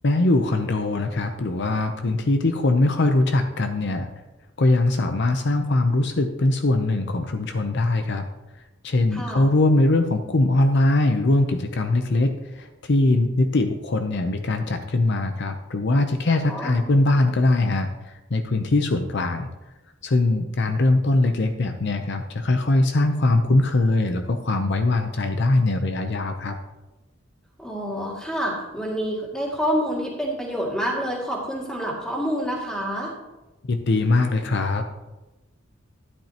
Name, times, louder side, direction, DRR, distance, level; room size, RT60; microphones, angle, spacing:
voice 1, 0.0-4.1 4.6-8.2 8.8-19.5 20.0-26.6 33.7-34.8, left 2 dB, 60° left, 6 dB, 0.7 m, -21 dB
voice 2, 9.1-9.5 16.5-17.0 27.6-33.1, equal, 5° left, -3 dB, 2.3 m, -28 dB
12.0 x 10.5 x 2.9 m, 1.1 s
head